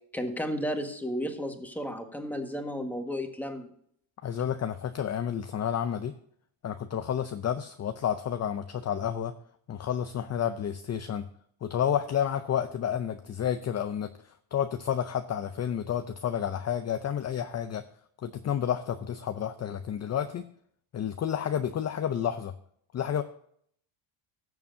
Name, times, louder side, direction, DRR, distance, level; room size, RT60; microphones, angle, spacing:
voice 1, 0.1-3.7, equal, 5° left, 4 dB, 1.5 m, -33 dB
voice 2, 4.2-6.1 6.6-9.3 9.7-11.3 11.6-17.8 18.2-20.5 20.9-22.5 22.9-23.2, left 9 dB, 35° left, 9 dB, 0.6 m, -30 dB
16.5 x 7.0 x 2.7 m, 0.66 s
cardioid pair, 120°, 49 cm